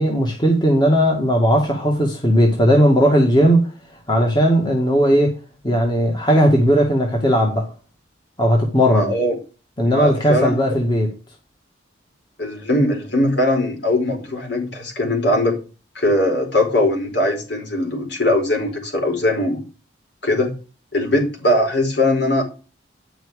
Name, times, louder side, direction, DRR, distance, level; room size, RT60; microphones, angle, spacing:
voice 1, 0.0-3.7 4.1-5.3 5.6-7.7 8.4-9.1 9.8-11.1, equal, 25° left, 2.0 m, -17 dB
voice 2, 8.9-9.3 9.8-10.6 12.4-15.5 15.9-19.6 20.2-20.5 20.9-22.4, left 1 dB, 65° left, 4.9 m, -20 dB
10.0 x 6.2 x 6.4 m
head